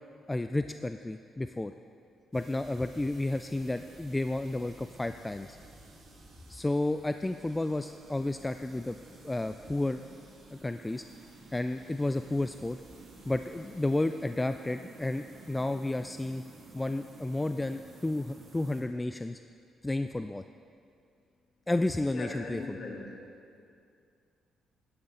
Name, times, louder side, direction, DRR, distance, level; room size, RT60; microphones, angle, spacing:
voice 1, 0.3-1.7 2.3-5.6 6.5-9.0 9.2-10.0 10.5-11.0 11.5-12.8 13.3-16.4 16.7-19.4 19.8-20.4 21.7-22.8, left 2 dB, 15° left, 9 dB, 0.3 m, -32 dB
sound 1, 2.3-18.8, right 2 dB, 55° right, 2.8 m, -52 dB
voice 2, 22.1-23.1, left 3 dB, 50° left, -3 dB, 2.8 m, -39 dB
11.5 x 11.0 x 3.8 m, 2.3 s
cardioid pair, 90°, 0 cm